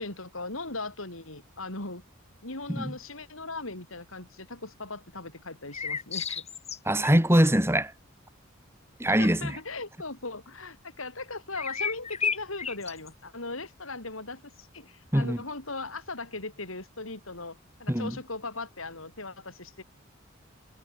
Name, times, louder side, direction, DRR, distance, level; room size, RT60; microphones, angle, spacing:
voice 1, 0.0-2.0 2.4-6.5 9.2-19.8, left 3 dB, 85° left, 6.4 m, -38 dB
sound 1, 5.7-7.1 11.5-13.1, left 6 dB, 30° left, 5.7 m, -31 dB
voice 2, 6.8-7.9 9.0-9.6 15.1-15.4 17.9-18.1, right 1 dB, 10° right, 3.1 m, -23 dB
head